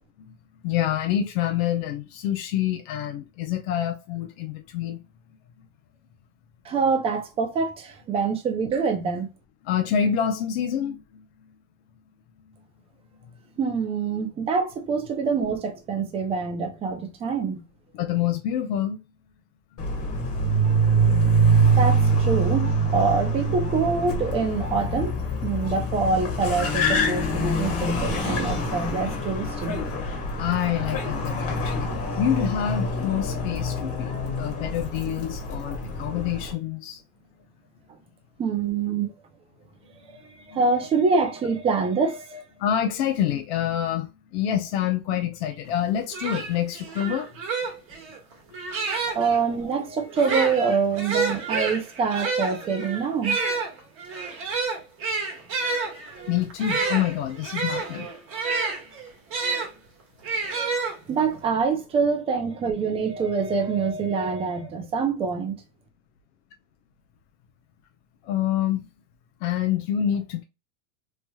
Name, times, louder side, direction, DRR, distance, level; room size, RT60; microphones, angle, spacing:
voice 1, 0.6-5.0 9.6-11.3 17.9-19.0 25.5-25.6 30.4-37.0 40.5-40.6 42.6-47.3 48.5-49.0 56.3-58.1 68.2-68.9 69.4-70.4, left 10 dB, 50° left, 0.6 m, -27 dB
voice 2, 6.6-9.3 13.6-17.6 21.7-25.2 25.4-29.8 38.4-39.1 40.1-42.4 49.1-53.4 61.1-65.6, right 5 dB, 15° right, 0.4 m, -25 dB
Car, 19.8-36.5, right 2 dB, 35° left, 1.3 m, -25 dB
sound 1, 45.7-45.8 46.1-49.4 50.1-59.7 60.2-61.3, right 4 dB, 30° right, 1.2 m, -29 dB
3.1 x 2.9 x 2.2 m
supercardioid pair, 135°, 43 cm